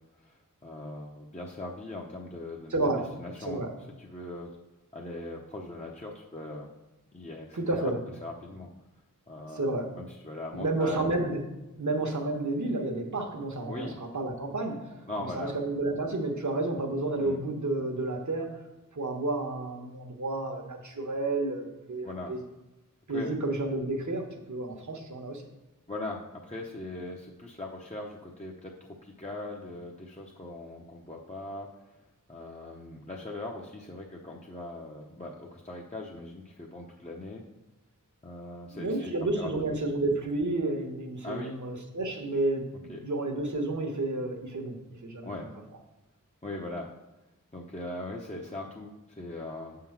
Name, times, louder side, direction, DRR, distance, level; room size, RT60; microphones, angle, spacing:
voice 1, 0.2-2.8 3.2-3.6 4.0-4.5 4.9-6.7 7.1-7.9 8.2-8.7 9.3-11.1 13.7-14.0 15.1-15.5 17.2-17.4 22.0-22.3 23.1-23.3 25.9-31.7 32.3-37.4 38.2-39.5 41.2-41.6 42.9-43.0 45.2-45.5 46.4-46.9 47.5-49.8, left 2 dB, 20° left, -2 dB, 0.8 m, -40 dB
voice 2, 2.7-3.1 3.4-3.7 7.5-8.0 9.5-9.9 10.5-11.4 11.7-18.6 18.9-22.4 23.1-25.4 38.7-45.3, right 2 dB, 60° right, 2 dB, 1.2 m, -31 dB
6.8 x 3.8 x 5.9 m, 1.0 s
wide cardioid pair, 40°, 33 cm